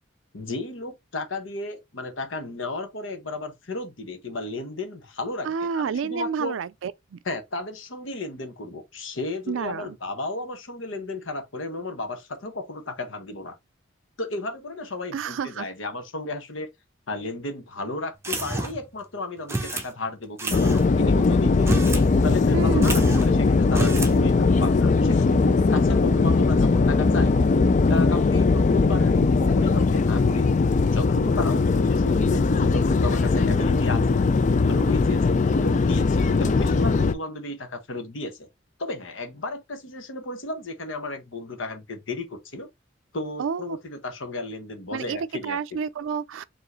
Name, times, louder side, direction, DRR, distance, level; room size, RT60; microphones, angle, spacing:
voice 1, 0.3-6.5 7.2-13.5 14.2-16.7 17.1-21.8 22.2-27.3 27.9-30.6 30.9-34.2 34.7-38.5 38.8-42.7 43.1-45.6, left 2 dB, 90° left, 1.1 m, -34 dB
voice 2, 5.4-7.2 9.5-10.0 15.1-15.7 22.5-23.2 43.4-43.8 44.9-45.2 45.4-46.4, right 6 dB, 85° right, 0.4 m, -29 dB
sound 1, 18.2-18.9 19.5-19.9 20.4-20.8 21.5-22.1 22.4-22.5 22.8-23.3 23.7-24.2, right 2 dB, 15° right, 0.8 m, -29 dB
sound 2, 20.5-37.1, left 4 dB, 40° left, 0.4 m, -20 dB
4.7 x 3.0 x 3.0 m
head